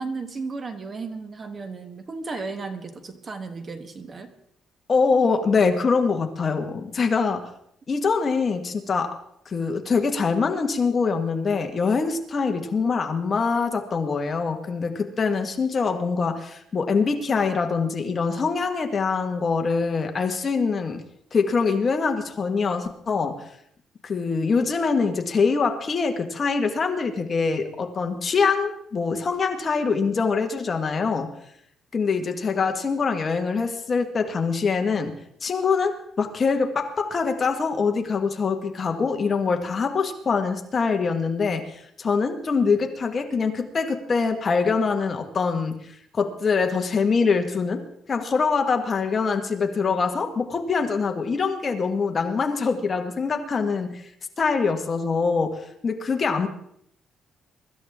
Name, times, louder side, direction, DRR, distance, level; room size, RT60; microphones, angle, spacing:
voice 1, 0.0-4.3, right 4 dB, 30° right, 8 dB, 1.4 m, -34 dB
voice 2, 4.9-7.5 7.9-9.1 9.5-21.0 21.3-23.4 24.0-31.3 31.9-35.1 35.4-47.8 48.1-54.0 54.4-56.5, left 5 dB, 30° left, 5 dB, 1.6 m, -24 dB
23.5 x 13.5 x 3.6 m, 0.71 s
cardioid pair, 145°, 0 cm